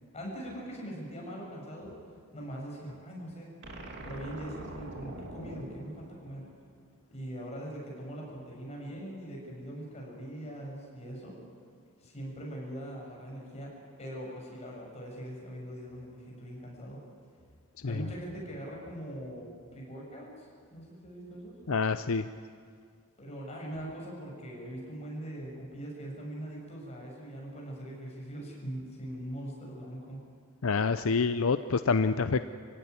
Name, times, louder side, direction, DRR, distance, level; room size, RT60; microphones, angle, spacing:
voice 1, 0.1-1.9 2.3-3.5 4.0-6.5 7.1-11.4 12.0-13.7 14.0-17.0 17.8-21.6 23.2-30.2, right 1 dB, 30° left, -2 dB, 7.3 m, -41 dB
sound 1, 3.6-7.0, right 1 dB, 55° right, 2.8 m, -44 dB
voice 2, 21.7-22.3 30.6-32.4, left 4 dB, 70° left, 11 dB, 0.6 m, -27 dB
26.5 x 16.5 x 9.7 m, 2.1 s
head